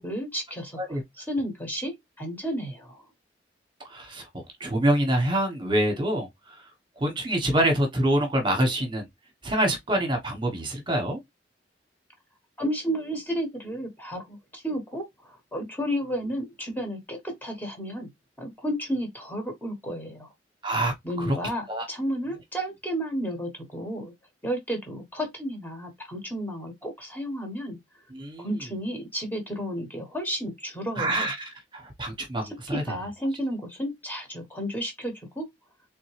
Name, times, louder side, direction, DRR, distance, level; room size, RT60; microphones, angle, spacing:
voice 1, 0.0-3.0 12.6-18.1 18.4-20.3 21.0-24.1 24.4-27.8 28.4-31.3 32.7-35.5, equal, 10° left, 1.4 m, -32 dB
voice 2, 3.9-4.3 4.6-6.6 7.0-9.1 9.4-11.2 20.6-21.4 21.7-21.8 28.1-28.5 31.0-32.8, right 1 dB, 25° right, 1.3 m, -26 dB
3.8 x 3.6 x 3.3 m
head